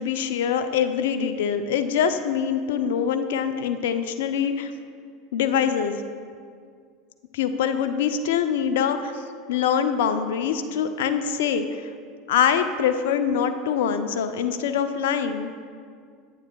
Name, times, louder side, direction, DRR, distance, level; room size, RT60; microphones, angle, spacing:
voice 1, 0.0-4.7 5.3-6.0 7.3-11.9 12.3-15.5, left 7 dB, 75° left, 9 dB, 0.4 m, -24 dB
9.6 x 8.4 x 2.2 m, 2.1 s
hypercardioid pair, 85°, 0 cm